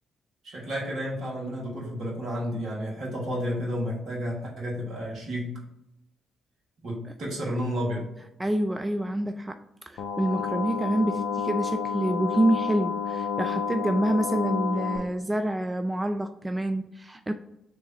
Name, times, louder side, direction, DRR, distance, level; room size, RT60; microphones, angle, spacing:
voice 1, 0.4-5.6 6.8-8.1, equal, 60° right, -3 dB, 1.5 m, -31 dB
voice 2, 8.4-17.3, right 1 dB, 20° right, 7 dB, 0.3 m, -27 dB
sound 1, 10.0-15.0, left 6 dB, 70° left, 0.4 m, -30 dB
3.3 x 3.2 x 3.9 m, 0.87 s
hypercardioid pair, 40°, 0 cm